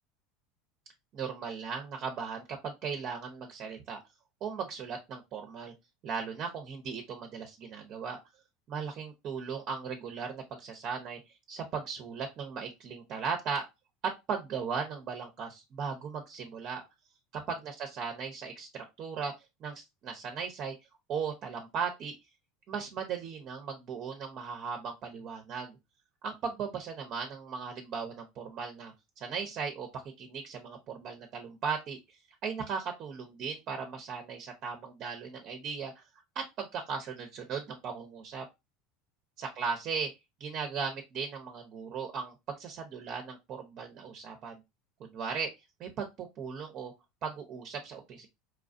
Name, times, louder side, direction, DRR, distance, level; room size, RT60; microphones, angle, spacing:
voice 1, 1.1-4.0 4.4-5.7 6.0-8.2 8.7-13.7 14.0-16.8 17.5-19.3 19.6-20.7 21.1-22.2 22.7-25.8 26.2-32.0 32.4-36.0 36.3-38.5 39.4-40.1 40.4-44.6 45.0-45.5 45.8-46.9 47.2-48.3, right 6 dB, 50° right, 4 dB, 0.9 m, -37 dB
4.6 x 2.4 x 2.6 m, 0.22 s
hypercardioid pair, 85°, 0 cm